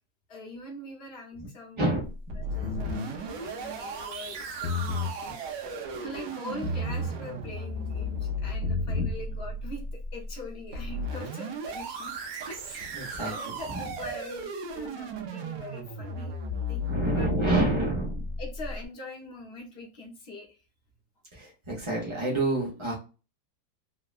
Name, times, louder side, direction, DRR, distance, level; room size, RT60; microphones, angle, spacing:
voice 1, 0.3-1.9 2.3-5.4 5.9-12.2 12.5-13.0 13.2-16.4 16.7-17.3 18.4-20.6, left 2 dB, 45° left, 0 dB, 0.9 m, -43 dB
voice 2, 1.8-2.4 8.9-9.1 12.9-13.3 16.9-18.3 21.3-22.9, right 1 dB, 45° right, -4 dB, 0.3 m, -28 dB
sound 1, 2.0-18.8, right 1 dB, 70° right, 1.3 m, -35 dB
sound 2, 2.6-3.1 4.5-5.2 6.6-7.2 8.5-9.2, left 3 dB, 85° left, 0.7 m, -31 dB
3.5 x 2.1 x 2.4 m, 0.33 s
omnidirectional pair, 2.0 m